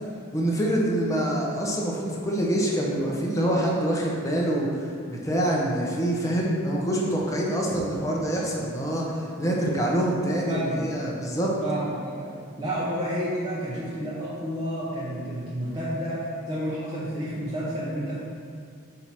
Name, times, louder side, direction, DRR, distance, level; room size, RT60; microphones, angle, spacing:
voice 1, 0.3-11.5, right 1 dB, 15° left, -4 dB, 1.0 m, -26 dB
voice 2, 10.5-10.8 11.6-18.2, equal, 20° right, -9 dB, 0.9 m, -30 dB
7.9 x 2.9 x 5.9 m, 2.2 s
head